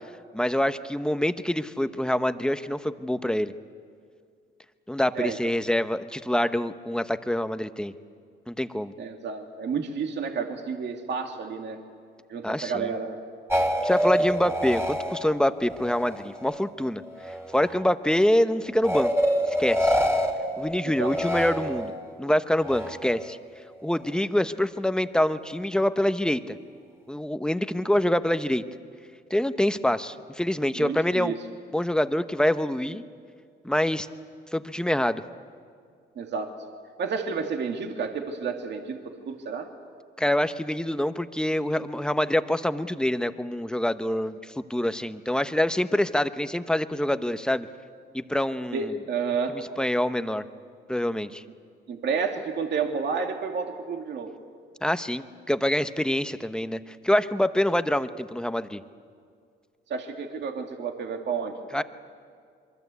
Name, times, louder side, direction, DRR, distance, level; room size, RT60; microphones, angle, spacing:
voice 1, 0.3-3.5 4.9-7.9 8.5-8.9 12.4-12.9 13.8-17.0 17.5-19.1 19.5-20.0 20.6-21.9 22.2-23.4 23.8-26.6 27.1-28.6 29.3-31.3 31.7-33.0 33.6-34.1 34.5-35.2 40.2-47.7 48.1-48.9 49.5-50.4 50.9-51.4 54.8-58.8 61.7-61.8, left 1 dB, 5° left, 10 dB, 1.0 m, -25 dB
voice 2, 5.1-5.5 9.0-11.8 12.3-13.2 14.4-14.5 20.9-21.1 30.8-31.4 36.2-36.5 37.0-39.7 48.7-49.6 51.9-54.3 59.9-61.6, right 5 dB, 60° right, 4 dB, 2.3 m, -30 dB
sound 1, 13.5-16.7 17.0-17.9 18.8-22.1 22.6-23.3, equal, 10° right, 2.8 m, -27 dB
27.0 x 23.0 x 8.3 m, 2.2 s
cardioid pair, 90°, 20 cm